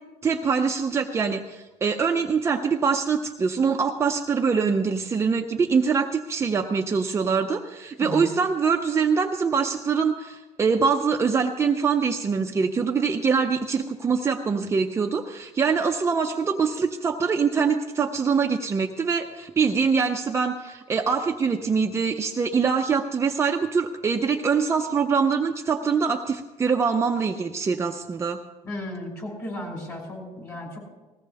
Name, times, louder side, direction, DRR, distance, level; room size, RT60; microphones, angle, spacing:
voice 1, 0.2-28.4, right 5 dB, 20° right, 3 dB, 0.6 m, -24 dB
voice 2, 28.6-30.8, left 1 dB, 25° left, -1 dB, 5.6 m, -34 dB
19.5 x 15.5 x 3.4 m, 1.2 s
cardioid pair, 145°, 13 cm